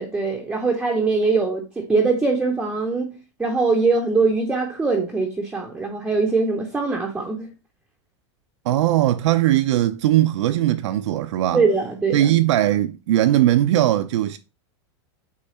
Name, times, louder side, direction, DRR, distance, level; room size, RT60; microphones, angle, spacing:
voice 1, 0.0-7.5 11.5-12.3, right 4 dB, 5° right, 0.6 m, -22 dB
voice 2, 8.7-11.6 12.1-14.4, right 13 dB, 70° right, 0.5 m, -19 dB
8.3 x 3.1 x 4.2 m
supercardioid pair, 160°, 16 cm